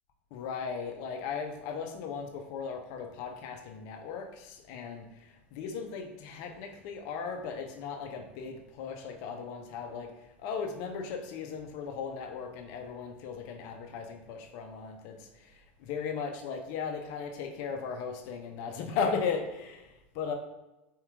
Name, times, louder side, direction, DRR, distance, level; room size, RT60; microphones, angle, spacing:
voice 1, 0.3-20.3, left 6 dB, 60° left, 4 dB, 0.8 m, -37 dB
4.6 x 2.9 x 3.6 m, 0.95 s
hypercardioid pair, 90°, 7 cm